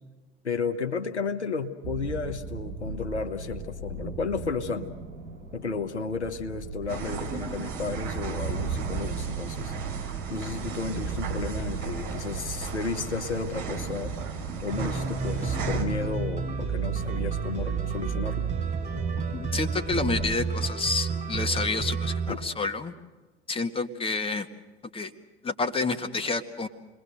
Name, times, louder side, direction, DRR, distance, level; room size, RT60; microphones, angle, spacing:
voice 1, 0.4-4.9 5.5-9.7 10.3-14.1 14.6-18.5 22.3-22.4, left 4 dB, 80° left, 6 dB, 1.3 m, -33 dB
sound 1, 1.8-20.4, right 4 dB, 75° right, 4.6 m, -37 dB
sound 2, 6.9-15.8, right 5 dB, 50° right, 4.9 m, -36 dB
sound 3, 14.7-22.3, right 5 dB, 25° right, 6.3 m, -30 dB
voice 2, 19.3-22.9 23.5-24.5 24.9-25.1 25.4-26.7, left 3 dB, 15° left, 6 dB, 1.7 m, -29 dB
28.5 x 21.5 x 6.6 m, 1.2 s
figure-of-eight pair, 70°, 33 cm